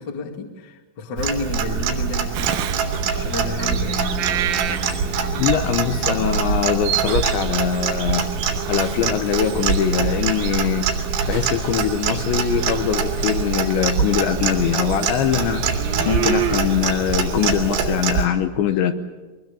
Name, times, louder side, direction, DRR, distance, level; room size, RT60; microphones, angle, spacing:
voice 1, 0.0-2.7 3.1-4.1, left 3 dB, 35° left, 3 dB, 1.8 m, -31 dB
Clock, 1.2-18.3, right 5 dB, 65° right, 4.4 m, -24 dB
Bird vocalization bird call bird song, 2.3-17.8, right 10 dB, 80° right, 2.1 m, -32 dB
voice 2, 5.4-10.9 11.3-18.9, left 9 dB, 75° left, 7 dB, 3.1 m, -22 dB
23.5 x 21.0 x 8.8 m, 1.2 s
omnidirectional pair, 5.7 m